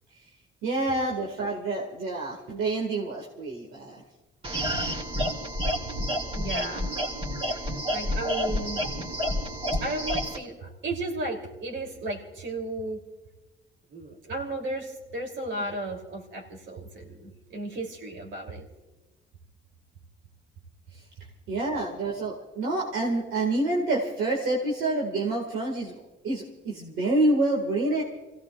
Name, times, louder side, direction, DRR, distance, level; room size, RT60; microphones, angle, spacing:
voice 1, 0.6-4.0 21.5-26.0 26.2-28.0, right 2 dB, 90° right, -2 dB, 2.1 m, -27 dB
sound 1, 4.4-10.4, equal, 30° right, 2.4 m, -29 dB
voice 2, 6.3-6.9 7.5-7.6 7.9-8.8 9.8-13.0 13.9-18.7, right 2 dB, 70° right, 2 dB, 3.3 m, -34 dB
28.5 x 16.5 x 2.5 m, 1.1 s
cardioid pair, 90°, 20 cm